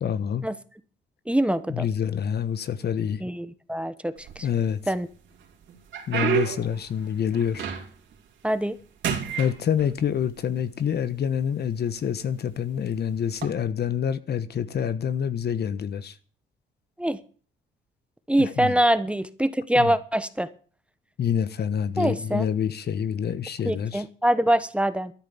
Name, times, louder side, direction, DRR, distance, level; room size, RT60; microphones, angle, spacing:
voice 1, 0.0-0.5 1.7-3.2 4.4-4.8 6.1-7.7 9.4-16.2 18.4-18.8 19.7-19.9 21.2-24.0, left 8 dB, 55° left, 1.2 m, -27 dB
voice 2, 1.3-1.9 3.2-4.5 4.9-5.1 8.4-8.8 17.0-17.2 18.3-20.5 22.0-22.4 23.6-25.1, right 1 dB, 5° right, 1.1 m, -24 dB
sound 1, 4.2-4.9 5.4-8.1 8.5-8.8 9.0-10.3 11.1-11.2 11.9-12.1 13.3-13.5, right 8 dB, 70° right, 3.5 m, -30 dB
13.0 x 9.9 x 7.2 m
cardioid pair, 90°, 20 cm